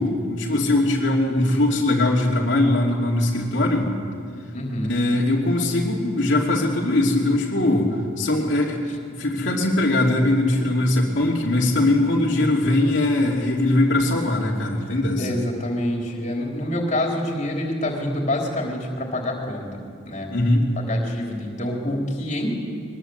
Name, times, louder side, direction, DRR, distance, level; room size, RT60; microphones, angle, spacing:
voice 1, 0.0-3.9 4.9-8.8 9.1-15.4 20.3-20.7, left 1 dB, 65° left, -3 dB, 2.9 m, -21 dB
voice 2, 4.5-4.9 15.2-19.8 20.1-20.3 20.8-22.5, left 1 dB, 40° left, 0 dB, 3.9 m, -26 dB
22.5 x 21.5 x 8.0 m, 2.2 s
head